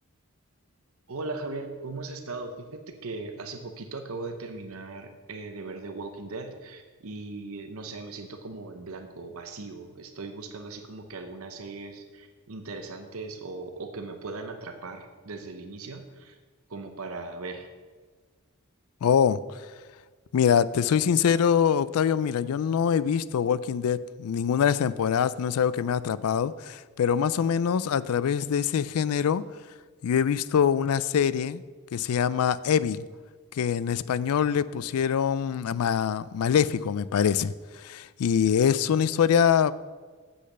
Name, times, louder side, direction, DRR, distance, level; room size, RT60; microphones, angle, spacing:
voice 1, 1.1-16.4 16.7-17.7, right 3 dB, 75° right, 6 dB, 0.8 m, -38 dB
voice 2, 19.0-19.4 20.3-29.4 30.0-31.6 31.9-33.0 33.6-37.5 37.8-39.7, left 7 dB, 85° left, 17 dB, 0.4 m, -24 dB
8.0 x 6.4 x 6.6 m, 1.4 s
head